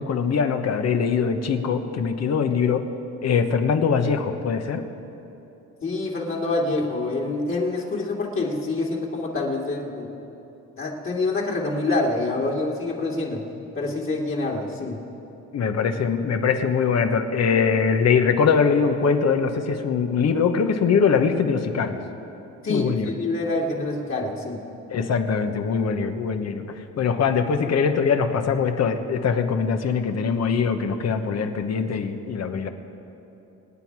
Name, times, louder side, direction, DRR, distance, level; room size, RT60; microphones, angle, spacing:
voice 1, 0.0-2.9 3.2-4.8 15.5-22.0 22.7-23.1 24.9-32.7, left 6 dB, 60° left, 7 dB, 1.2 m, -22 dB
voice 2, 5.8-10.1 10.8-13.4 13.7-15.0 22.6-24.6, left 2 dB, 45° left, -3 dB, 2.7 m, -26 dB
26.0 x 9.3 x 4.8 m, 2.9 s
cardioid pair, 90°, 30 cm